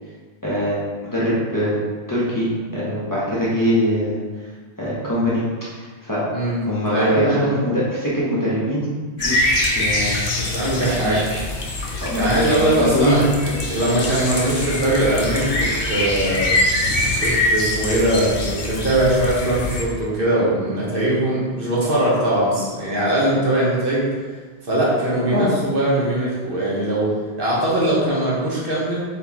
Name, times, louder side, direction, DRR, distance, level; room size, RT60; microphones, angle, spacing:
voice 1, 0.4-1.8 2.1-4.2 4.8-5.4 5.7-6.2 6.6-8.9 9.2-10.2 11.0-11.4 12.0-13.2 25.3-25.5, equal, 20° left, -9 dB, 1.0 m, -23 dB
voice 2, 6.9-7.4 10.4-11.3 12.1-16.5 17.2-24.1 24.7-27.1 27.4-29.0, right 1 dB, 55° right, -7 dB, 1.2 m, -21 dB
sound 1, 9.2-19.8, left 1 dB, 50° left, 0.8 m, -23 dB
4.5 x 3.7 x 2.8 m, 1.5 s
omnidirectional pair, 1.1 m